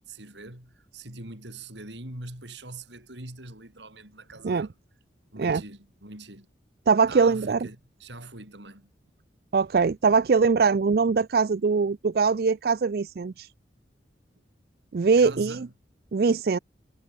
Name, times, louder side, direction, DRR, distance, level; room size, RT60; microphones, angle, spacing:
voice 1, 0.0-4.8 5.3-6.5 7.1-8.9 14.4-14.5 15.2-15.7, right 2 dB, 80° right, 6.9 m, -42 dB
voice 2, 6.9-7.6 9.5-13.5 14.9-15.7 16.1-16.6, right 5 dB, 55° right, 0.4 m, -22 dB
head